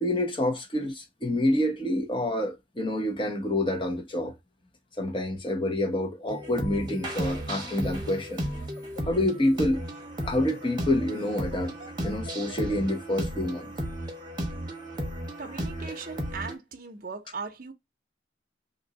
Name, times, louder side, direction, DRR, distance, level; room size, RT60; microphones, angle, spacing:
voice 1, 0.0-4.3 5.0-8.4 9.1-9.8 10.2-11.7 12.0-13.7, left 1 dB, 25° left, 0.9 m, -27 dB
sound 1, 6.3-16.5, equal, 20° right, 0.9 m, -34 dB
Laughter, 8.3-13.3, left 2 dB, 70° left, 1.7 m, -50 dB
voice 2, 15.4-17.7, right 5 dB, 45° right, 0.6 m, -38 dB
2.8 x 2.6 x 3.9 m
head